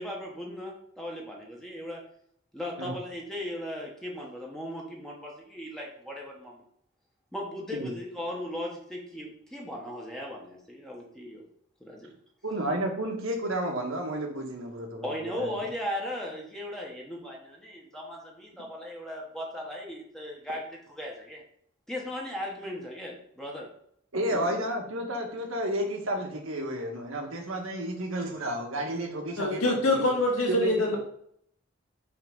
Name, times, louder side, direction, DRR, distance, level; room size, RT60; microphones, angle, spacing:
voice 1, 0.0-2.0 2.5-6.6 7.3-11.4 11.8-12.1 15.0-21.4 21.9-23.7 24.3-24.5, left 1 dB, ahead, -2 dB, 1.1 m, -37 dB
voice 2, 12.4-15.5 24.1-30.1 30.5-30.7, right 1 dB, 80° right, 2 dB, 1.5 m, -31 dB
voice 3, 29.4-31.0, left 1 dB, 85° left, -1 dB, 2.0 m, -25 dB
5.8 x 3.7 x 5.3 m, 0.68 s
head